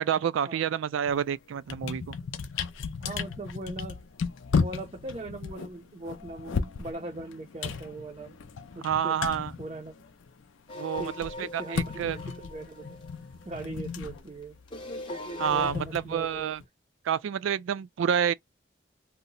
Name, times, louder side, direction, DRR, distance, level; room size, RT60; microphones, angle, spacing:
voice 1, 0.0-2.2 8.8-9.5 10.8-12.2 15.4-16.6 17.0-18.3, right 8 dB, 90° right, 0.3 m, -28 dB
sound 1, 1.1-1.3 1.6-10.4 10.7-16.6, left 5 dB, 90° left, 0.5 m, -35 dB
voice 2, 3.0-4.0 4.5-8.4 8.7-9.2 9.6-9.9 11.0-13.0 13.4-14.6 15.4-16.5, right 2 dB, 30° right, 0.5 m, -40 dB
sound 2, 10.7-14.1 14.7-15.7, left 2 dB, 25° left, 0.7 m, -40 dB
2.8 x 2.1 x 3.9 m
head